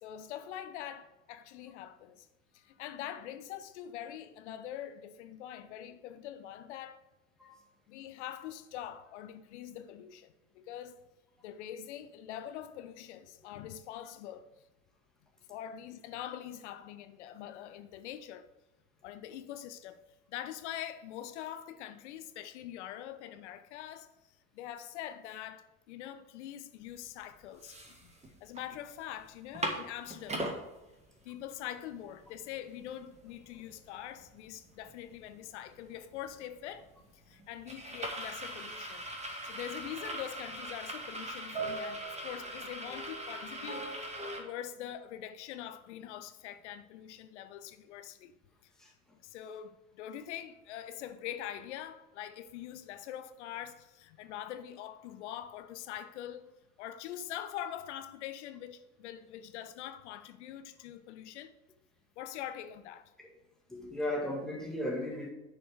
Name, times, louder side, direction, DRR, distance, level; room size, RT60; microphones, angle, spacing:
voice 1, 0.0-2.3 2.5-7.0 7.9-11.1 11.4-14.5 15.5-18.5 19.0-28.1 28.4-30.4 31.2-39.0 39.4-48.4 48.8-48.9 49.2-56.5 56.8-61.5 62.2-63.1, left 11 dB, 55° left, 0.7 m, -44 dB
sound 1, 27.0-27.1 27.4-28.6 29.0-29.1 29.4-30.6 31.2-31.3 31.6-44.4, right 1 dB, 15° right, 1.5 m, -40 dB
voice 2, 63.7-65.3, left 1 dB, ahead, 1.8 m, -36 dB
10.0 x 4.5 x 4.9 m
figure-of-eight pair, 75°, 41 cm